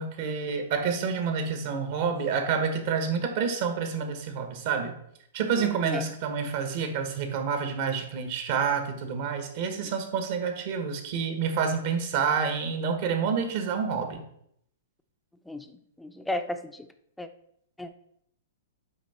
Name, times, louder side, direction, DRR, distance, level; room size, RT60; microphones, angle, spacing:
voice 1, 0.0-4.9 5.3-14.2, right 6 dB, 55° right, 6 dB, 1.4 m, -28 dB
voice 2, 5.6-6.1 15.5-15.7 16.0-16.9 17.2-17.3 17.8-17.9, left 1 dB, 5° left, 7 dB, 0.6 m, -34 dB
7.3 x 4.7 x 4.3 m, 0.71 s
hypercardioid pair, 120°, 0 cm